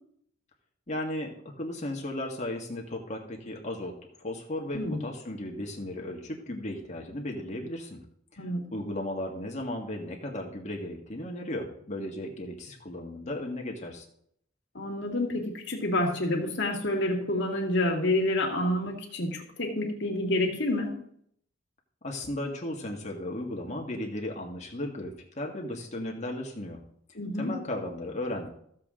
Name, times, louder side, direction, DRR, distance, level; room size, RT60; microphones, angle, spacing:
voice 1, 0.9-8.0 8.3-14.0 22.0-26.8 27.4-28.5, left 1 dB, 35° left, 1 dB, 1.9 m, -35 dB
voice 2, 14.7-20.9 27.2-27.6, left 1 dB, 60° left, 1 dB, 2.2 m, -28 dB
14.0 x 7.4 x 3.8 m, 0.68 s
head